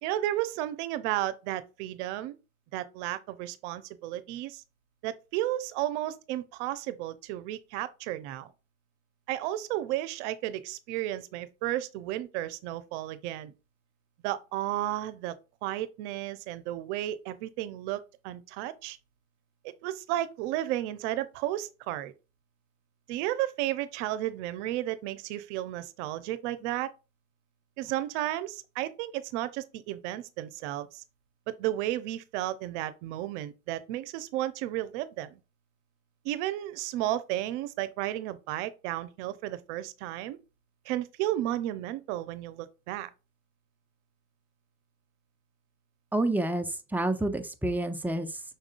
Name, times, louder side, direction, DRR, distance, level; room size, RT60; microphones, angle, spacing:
voice 1, 0.0-2.4 2.7-4.6 5.0-8.5 9.3-13.5 14.2-15.4 15.6-19.0 19.6-22.1 23.1-26.9 27.8-31.0 31.5-35.4 36.2-40.4 40.9-43.1, right 14 dB, 80° right, 0.6 m, -33 dB
voice 2, 46.1-48.4, right 1 dB, 5° right, 0.7 m, -29 dB
5.5 x 3.6 x 2.4 m
supercardioid pair, 80°, 35 cm